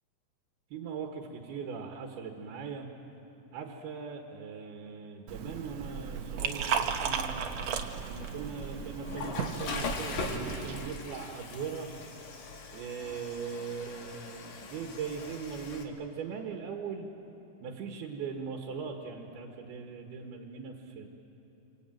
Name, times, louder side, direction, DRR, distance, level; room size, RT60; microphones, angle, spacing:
voice 1, 0.7-2.9 3.5-7.4 8.1-11.9 12.7-17.1 17.6-21.1, right 6 dB, 85° right, 2 dB, 3.5 m, -40 dB
Liquid, 5.3-10.9, right 7 dB, 60° right, 1.8 m, -35 dB
Water / Toilet flush, 7.5-15.8, left 4 dB, 55° left, 3.0 m, -41 dB
26.0 x 25.0 x 9.1 m, 3.0 s
omnidirectional pair, 4.4 m